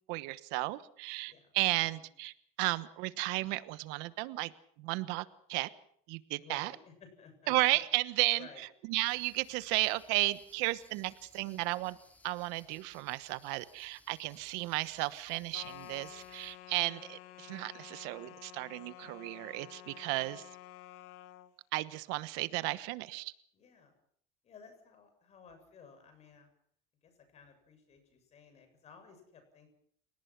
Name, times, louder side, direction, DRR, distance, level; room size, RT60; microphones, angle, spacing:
voice 1, 0.1-4.5 4.8-5.7 6.1-6.7 7.5-8.4 8.9-12.0 12.2-20.4 21.7-23.3, right 20 dB, 85° right, 15 dB, 1.2 m, -34 dB
voice 2, 6.4-7.8 8.4-8.6 14.2-14.4 23.5-24.0 24.4-26.5 27.0-29.7, left 5 dB, 40° left, 8 dB, 7.4 m, -56 dB
sound 1, 9.0-16.5, left 1 dB, 10° left, 3.6 m, -62 dB
sound 2, 15.5-21.5, left 14 dB, 85° left, 1.4 m, -51 dB
29.5 x 18.5 x 6.0 m, 0.63 s
cardioid pair, 140°, 17 cm